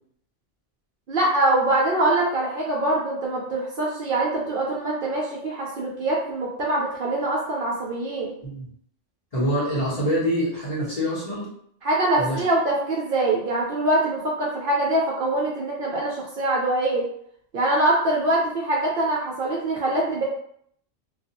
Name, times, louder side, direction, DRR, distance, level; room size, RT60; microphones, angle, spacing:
voice 1, 1.1-8.3 11.8-17.0 17.5-20.2, right 2 dB, 60° right, -3 dB, 0.6 m, -23 dB
voice 2, 9.3-11.5 12.2-12.4, equal, 30° left, -6 dB, 1.0 m, -25 dB
2.3 x 2.3 x 2.8 m, 0.67 s
omnidirectional pair, 1.3 m